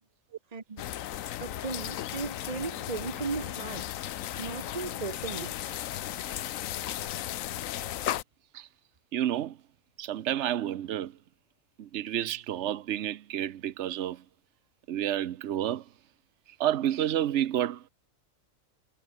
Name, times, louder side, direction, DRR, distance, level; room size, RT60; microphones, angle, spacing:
voice 1, 0.5-0.9 1.4-3.9 4.4-5.6, right 4 dB, 30° right, 1.1 m, -36 dB
sound 1, 0.8-8.2, left 12 dB, 80° left, 1.1 m, -35 dB
voice 2, 9.1-9.6 10.0-11.1 11.8-14.2 14.9-15.8 16.6-17.8, right 11 dB, 60° right, 1.0 m, -30 dB
omnidirectional pair, 1.4 m